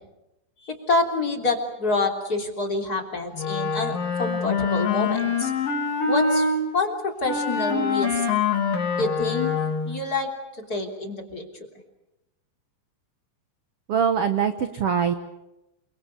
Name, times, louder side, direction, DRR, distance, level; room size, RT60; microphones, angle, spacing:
voice 1, 0.6-5.5 6.1-6.5 6.7-8.2 9.0-9.5 9.8-10.3 10.7-11.5, left 2 dB, 25° left, 2 dB, 3.3 m, -27 dB
Wind instrument woodwind instrument, 3.4-6.6 7.3-10.0, left 5 dB, 60° left, 4.6 m, -25 dB
voice 2, 13.9-15.1, right 7 dB, 80° right, 8 dB, 1.3 m, -23 dB
29.0 x 24.5 x 7.0 m, 0.95 s
omnidirectional pair, 4.6 m